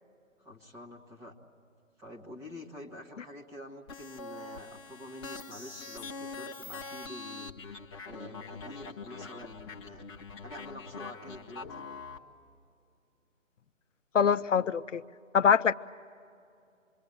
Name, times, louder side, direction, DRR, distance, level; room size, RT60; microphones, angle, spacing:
voice 1, 0.4-1.3 2.0-7.6 8.1-10.1 10.4-11.9, left 1 dB, 5° right, -3 dB, 1.2 m, -47 dB
sound 1, 3.9-12.2, left 3 dB, 20° left, 0.9 m, -43 dB
voice 2, 14.1-15.0 15.3-15.7, left 7 dB, 65° left, 10 dB, 0.6 m, -24 dB
27.0 x 22.0 x 8.6 m, 2.5 s
figure-of-eight pair, 150°, 39 cm